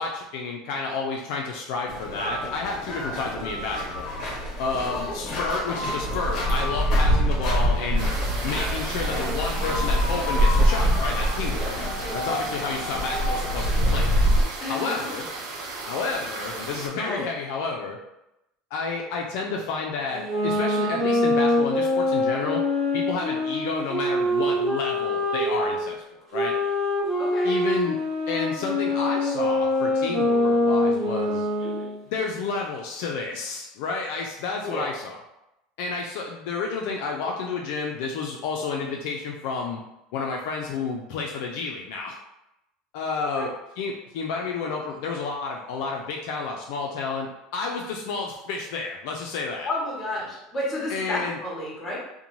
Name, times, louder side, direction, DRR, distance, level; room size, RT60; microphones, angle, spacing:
voice 1, 0.0-4.1 4.6-8.1 8.4-11.7 12.1-14.1 14.7-15.3 15.9-18.0 18.7-22.6 22.9-26.5 27.4-28.0 28.3-31.5 32.1-35.2 35.8-39.8 40.1-42.2 42.9-49.7 50.9-51.4, left 4 dB, 70° left, 0 dB, 0.4 m, -30 dB
sound 1, 1.9-14.4, equal, 45° left, 0.8 m, -25 dB
voice 2, 4.8-5.2 11.5-11.8 14.6-15.1 17.0-17.3 23.2-23.3 27.2-27.5 31.6-31.9 34.6-34.9 43.3-43.5 49.6-52.0, left 1 dB, 20° left, -4 dB, 1.0 m, -32 dB
sound 2, 8.0-16.9, right 3 dB, 65° right, 0.6 m, -35 dB
sound 3, 20.1-25.8 26.3-31.9, left 1 dB, 30° right, 0.7 m, -24 dB
2.6 x 2.1 x 3.0 m, 0.88 s
supercardioid pair, 150°, 0 cm